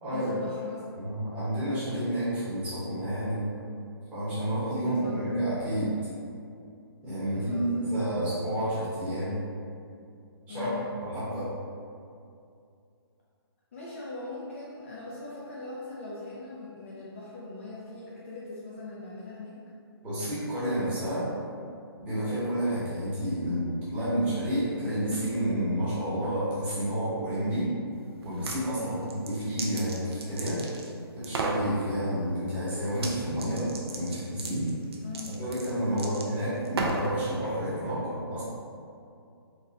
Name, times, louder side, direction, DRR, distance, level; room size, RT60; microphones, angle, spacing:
voice 1, 0.1-0.8 4.8-5.4 7.3-7.8 10.5-10.9 13.7-19.6 28.7-29.1 35.0-35.3 35.9-36.2, left 3 dB, 30° left, -6 dB, 0.4 m, -41 dB
voice 2, 1.0-3.6 4.1-6.0 7.0-9.4 10.5-11.5 20.0-21.3 22.0-27.7 28.2-30.7 31.2-34.7 35.2-38.4, right 1 dB, 10° right, -12 dB, 0.9 m, -30 dB
sound 1, 28.2-28.6 29.0-30.9 31.2-31.6 32.9-33.1 33.4-37.1, right 3 dB, 70° right, 0.6 m, -35 dB
4.1 x 2.1 x 3.6 m, 2.5 s
hypercardioid pair, 165°, 13 cm